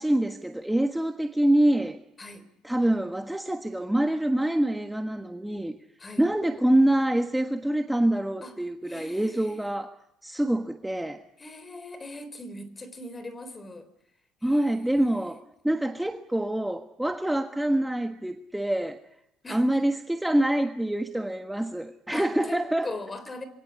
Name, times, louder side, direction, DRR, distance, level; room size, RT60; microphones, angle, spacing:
voice 1, 0.0-2.0 2.6-5.8 6.2-9.9 10.2-11.2 14.4-19.0 19.5-22.9, right 1 dB, 5° right, 1.4 m, -25 dB
voice 2, 8.9-9.6 11.4-13.9 14.4-15.4 19.4-19.8 22.1-23.4, left 2 dB, 20° left, 4.0 m, -41 dB
27.0 x 23.0 x 8.5 m
cardioid pair, 130°, 0 cm